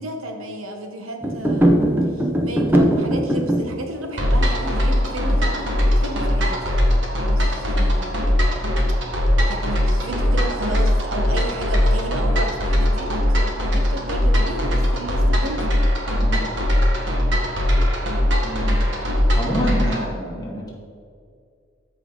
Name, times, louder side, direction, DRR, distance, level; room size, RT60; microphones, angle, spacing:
voice 1, 0.0-6.7 7.3-8.5 9.5-15.9, right 1 dB, 85° right, 4 dB, 1.2 m, -32 dB
sound 1, 1.2-3.8, right 1 dB, 10° right, 0.8 m, -19 dB
sound 2, 4.2-20.1, equal, 60° right, 1.6 m, -20 dB
voice 2, 18.4-18.8 19.3-20.7, equal, 20° left, -3 dB, 1.7 m, -27 dB
13.5 x 5.0 x 3.9 m, 2.3 s
head